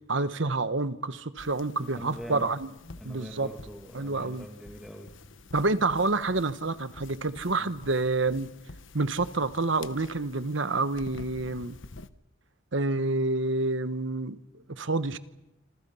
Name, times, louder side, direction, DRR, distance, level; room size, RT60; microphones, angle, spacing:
voice 1, 0.1-2.7 3.0-3.5 3.9-4.4 5.5-8.5 8.9-11.8 12.7-15.2, right 3 dB, 70° right, 1.3 m, -28 dB
sound 1, 1.4-12.1, left 3 dB, 80° left, 1.1 m, -49 dB
voice 2, 1.9-2.5 2.8-5.1 7.6-7.7, equal, ahead, 2.6 m, -43 dB
27.5 x 26.5 x 5.7 m
head